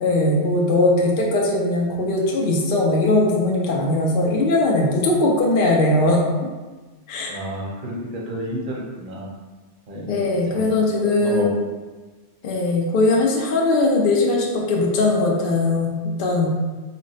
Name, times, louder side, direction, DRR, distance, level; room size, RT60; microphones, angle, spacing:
voice 1, 0.0-6.2 7.1-7.4 10.1-11.5 12.4-16.5, left 2 dB, 60° left, -1 dB, 0.7 m, -20 dB
voice 2, 7.3-9.3 9.9-10.7 11.0-11.5, equal, 50° right, -2 dB, 0.8 m, -30 dB
4.2 x 2.0 x 3.9 m, 1.3 s
omnidirectional pair, 1.2 m